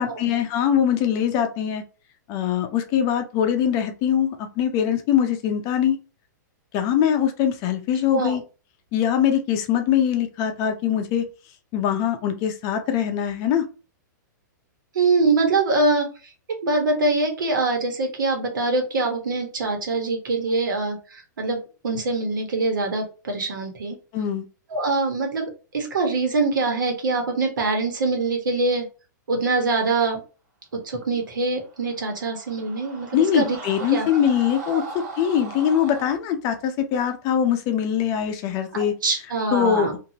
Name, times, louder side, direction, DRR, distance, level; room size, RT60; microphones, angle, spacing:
voice 1, 0.0-1.8 2.3-6.0 6.7-8.4 8.9-11.2 11.7-13.6 24.1-24.4 33.1-34.8 35.2-38.9 39.5-40.0, left 9 dB, 35° left, 7 dB, 0.5 m, -22 dB
voice 2, 14.9-16.1 16.6-21.6 21.8-24.0 24.7-28.8 29.3-30.2 30.8-33.6 33.9-34.1 39.0-39.9, right 3 dB, 85° right, 3 dB, 1.2 m, -23 dB
Screaming, 31.6-36.1, right 3 dB, 55° right, 1.4 m, -38 dB
2.6 x 2.6 x 2.8 m, 0.33 s
hypercardioid pair, 140°, 10 cm